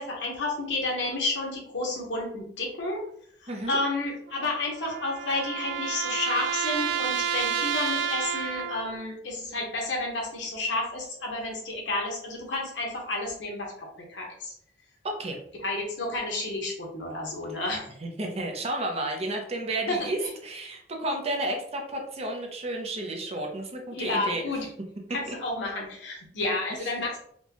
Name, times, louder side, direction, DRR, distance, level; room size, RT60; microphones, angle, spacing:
voice 1, 0.0-3.0 3.4-14.5 15.6-17.9 19.9-20.3 23.9-24.7 25.1-27.2, left 2 dB, 85° left, -1 dB, 1.1 m, -31 dB
voice 2, 3.5-3.8 15.0-15.4 18.0-24.4 25.3-25.4, right 1 dB, 35° right, 2 dB, 0.7 m, -32 dB
sound 1, 4.3-9.0, right 8 dB, 70° right, 0.3 m, -30 dB
4.3 x 2.3 x 2.9 m, 0.65 s
head